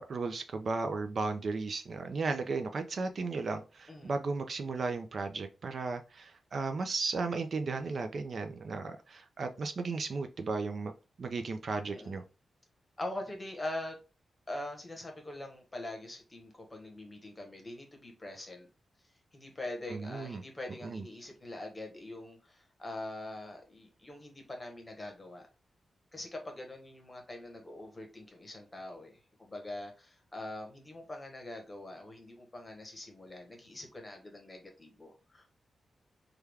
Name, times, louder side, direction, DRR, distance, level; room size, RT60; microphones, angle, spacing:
voice 1, 0.0-10.9 11.2-12.2 19.9-20.4 20.8-21.0, right 4 dB, 45° right, 7 dB, 0.3 m, -35 dB
voice 2, 13.0-14.0 14.5-18.7 19.3-25.4 26.1-35.5, left 1 dB, 15° left, 3 dB, 0.9 m, -43 dB
3.2 x 2.3 x 3.4 m, 0.31 s
wide cardioid pair, 155°, 0 cm